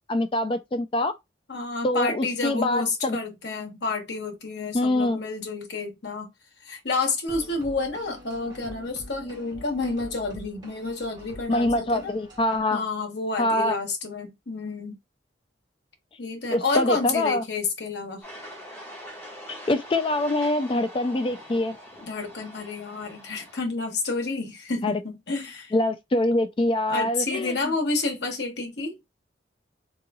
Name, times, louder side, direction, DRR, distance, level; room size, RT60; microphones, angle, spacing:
voice 1, 0.1-1.1 1.8-3.2 4.7-5.2 11.5-12.8 13.4-13.8 16.5-17.4 19.5-21.8 24.8-25.0 25.7-27.5, left 1 dB, 30° left, 0.3 m, -24 dB
voice 2, 1.5-6.3 6.6-12.1 12.7-15.0 16.2-18.2 22.0-25.7 26.9-28.9, left 3 dB, 70° left, 1.1 m, -30 dB
sound 1, 7.3-12.6, left 1 dB, 25° right, 1.5 m, -45 dB
sound 2, 18.2-23.6, equal, 10° left, 1.3 m, -43 dB
3.7 x 3.0 x 2.3 m
head